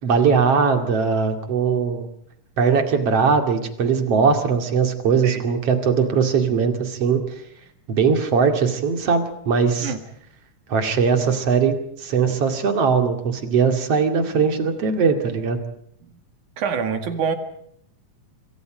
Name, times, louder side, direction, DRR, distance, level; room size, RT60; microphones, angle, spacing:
voice 1, 0.0-2.1 2.6-7.2 7.9-9.9 10.7-15.6, right 5 dB, 50° right, 6 dB, 3.2 m, -20 dB
voice 2, 16.6-17.4, right 6 dB, 70° right, 7 dB, 3.5 m, -25 dB
27.0 x 24.0 x 5.1 m, 0.70 s
omnidirectional pair, 3.7 m